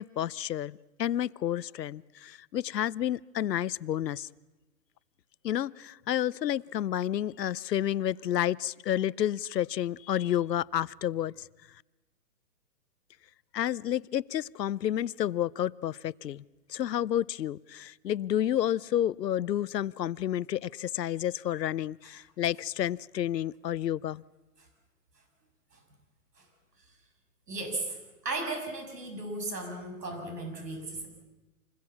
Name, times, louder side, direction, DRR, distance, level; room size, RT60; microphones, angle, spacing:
voice 1, 0.0-4.3 5.4-11.5 13.5-16.4 16.7-24.2, left 11 dB, 85° left, 21 dB, 0.8 m, -30 dB
voice 2, 27.5-28.0 28.2-31.1, right 2 dB, 80° right, 4 dB, 7.3 m, -36 dB
27.0 x 21.0 x 7.2 m, 1.1 s
hypercardioid pair, 175°, 48 cm